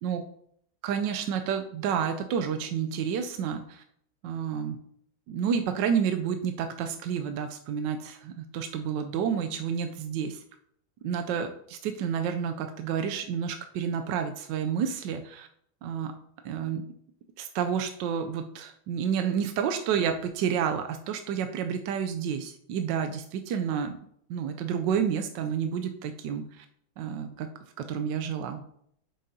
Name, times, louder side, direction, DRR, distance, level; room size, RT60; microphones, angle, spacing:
voice 1, 0.8-3.8 4.2-4.8 5.3-10.4 11.0-15.5 15.8-16.1 16.4-16.8 17.4-24.0 24.3-26.6 27.0-27.5 27.8-28.6, right 7 dB, 75° right, 6 dB, 1.1 m, -30 dB
8.0 x 6.4 x 2.7 m, 0.68 s
omnidirectional pair, 2.3 m